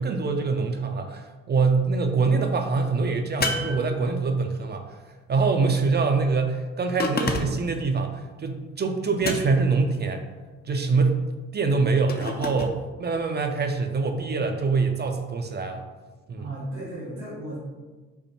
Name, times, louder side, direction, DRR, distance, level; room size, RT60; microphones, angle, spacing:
voice 1, 0.0-5.0 5.3-10.2 10.7-11.2 11.5-15.8 16.3-16.5, right 4 dB, 30° right, 5 dB, 0.4 m, -24 dB
sound 1, 3.4-4.5 7.0-7.8 9.2-9.8 12.1-12.8, left 3 dB, 30° left, 0.5 m, -29 dB
voice 2, 16.4-17.6, right 1 dB, 80° right, -8 dB, 1.4 m, -35 dB
5.3 x 2.1 x 3.0 m, 1.3 s
supercardioid pair, 55°, 32 cm